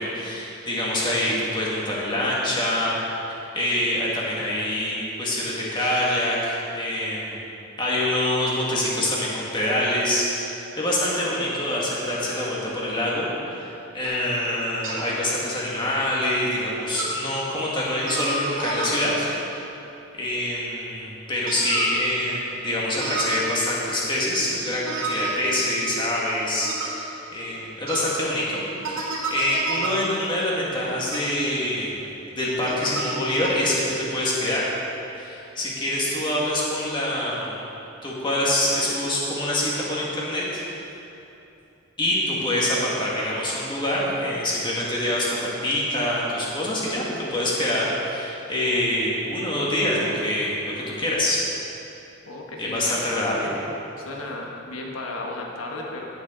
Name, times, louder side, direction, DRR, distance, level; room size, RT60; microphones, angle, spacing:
voice 1, 0.0-2.9 3.3-7.4 7.8-19.3 20.1-31.9 32.4-34.6 35.1-37.6 38.0-40.6 42.0-51.4 52.6-53.5, left 1 dB, 25° left, -5 dB, 1.9 m, -25 dB
sound 1, 14.0-14.2 14.8-15.1 15.8-15.9 16.9-17.2 18.0-19.1 21.5-21.9 23.0-23.4 24.8-25.3 26.6-26.9 27.9-28.1 28.8-29.9 31.1-31.2 32.7-33.2 33.4-33.5, right 3 dB, 75° right, 2.3 m, -30 dB
voice 2, 52.3-53.1 54.0-56.1, left 2 dB, 90° left, -1 dB, 1.3 m, -34 dB
16.0 x 7.2 x 3.9 m, 2.9 s
head